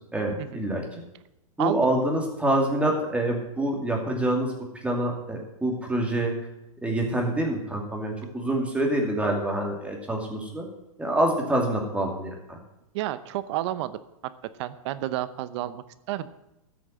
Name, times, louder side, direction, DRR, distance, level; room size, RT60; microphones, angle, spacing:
voice 1, 0.1-0.8 1.6-4.6 4.8-6.3 6.8-10.7 11.0-12.6, right 1 dB, 5° right, 0 dB, 2.6 m, -26 dB
voice 2, 1.6-1.9 12.9-14.0 14.6-16.3, right 14 dB, 50° right, 14 dB, 0.8 m, -30 dB
14.0 x 6.4 x 7.5 m, 0.88 s
hypercardioid pair, 125°, 18 cm